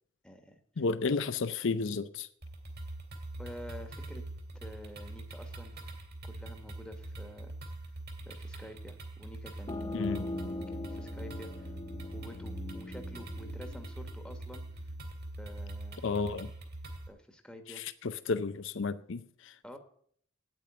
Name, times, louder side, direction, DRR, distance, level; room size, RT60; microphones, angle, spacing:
voice 1, 0.2-0.8 3.4-4.2 4.5-5.8 6.2-7.5 8.2-9.9 10.7-11.8 12.0-14.9 15.4-16.0 17.1-17.8 19.6-19.8, equal, 5° left, 1.3 m, -49 dB
voice 2, 0.8-2.3 9.9-10.3 16.0-16.5 17.8-19.5, left 4 dB, 65° left, 0.6 m, -32 dB
sound 1, 2.4-17.1, right 2 dB, 55° right, 2.6 m, -43 dB
sound 2, 9.7-15.1, left 2 dB, 25° left, 0.6 m, -41 dB
9.2 x 8.8 x 8.9 m
head